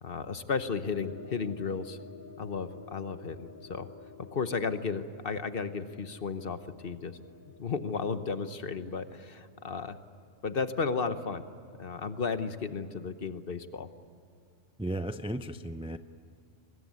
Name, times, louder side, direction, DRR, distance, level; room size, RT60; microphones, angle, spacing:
voice 1, 0.0-2.0 2.4-3.9 4.3-7.2 7.6-10.0 10.4-11.4 11.8-13.9, left 5 dB, 50° left, 11 dB, 1.1 m, -34 dB
sound 1, 0.9-10.4, left 6 dB, 20° left, 0.9 m, -52 dB
voice 2, 14.8-16.0, right 1 dB, 10° right, 10 dB, 0.3 m, -35 dB
24.5 x 20.5 x 9.5 m, 2.4 s
omnidirectional pair, 1.3 m